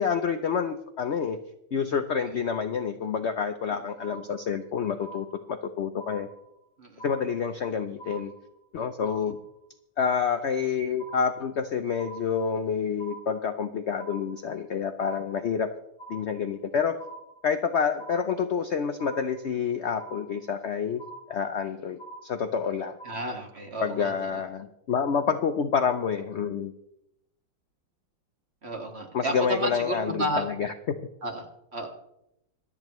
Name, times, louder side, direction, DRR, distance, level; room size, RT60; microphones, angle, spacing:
voice 1, 0.0-1.4 1.7-6.3 7.0-8.3 8.7-9.4 10.0-15.7 16.1-17.0 17.4-21.0 21.3-23.0 23.8-26.7 29.1-30.7, left 6 dB, 75° left, 8 dB, 0.6 m, -28 dB
sound 1, 4.0-4.7 5.0-5.7 6.0-6.7 7.0-7.7 8.0-8.7 9.0-9.7 10.0-10.7 11.0-11.7 12.0-12.7 13.0-13.7 14.0-14.7 15.0-15.7 16.0-16.7 17.0-17.7 18.0-18.7 19.0-19.7 20.0-20.7 21.0-21.7 22.0-22.7 23.0-23.7, right 2 dB, 80° right, 5.0 m, -45 dB
voice 2, 23.0-24.4 28.6-30.4 31.2-31.5 31.7-31.9, right 1 dB, 35° right, 2 dB, 2.0 m, -32 dB
26.0 x 8.8 x 3.1 m, 0.82 s
omnidirectional pair, 2.0 m